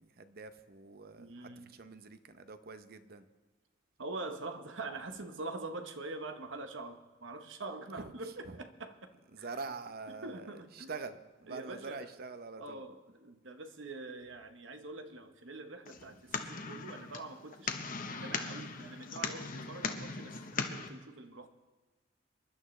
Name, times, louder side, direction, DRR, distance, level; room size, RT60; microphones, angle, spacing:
voice 1, 0.0-3.3 8.0-8.6 9.3-12.8 16.0-16.2, right 4 dB, 55° right, 10 dB, 0.8 m, -45 dB
voice 2, 1.2-1.7 4.0-8.9 9.4-9.5 10.2-10.9 11.5-12.1 12.6-17.7 18.2-21.5, right 2 dB, 80° right, 7 dB, 1.1 m, -44 dB
sound 1, 15.9-20.9, left 4 dB, 45° left, 1.0 m, -39 dB
26.5 x 11.5 x 3.2 m, 1.2 s
head